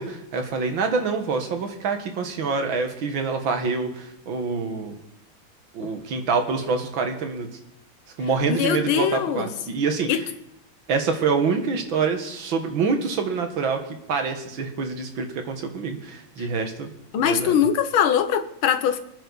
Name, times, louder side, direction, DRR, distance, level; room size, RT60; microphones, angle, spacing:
voice 1, 0.0-5.0 5.7-7.5 8.2-10.1 10.9-17.7, right 4 dB, 70° right, 5 dB, 2.3 m, -26 dB
voice 2, 8.5-9.5 10.1-10.2 17.1-19.0, left 8 dB, 80° left, 10 dB, 1.8 m, -22 dB
24.5 x 10.0 x 4.1 m, 0.80 s
omnidirectional pair, 2.2 m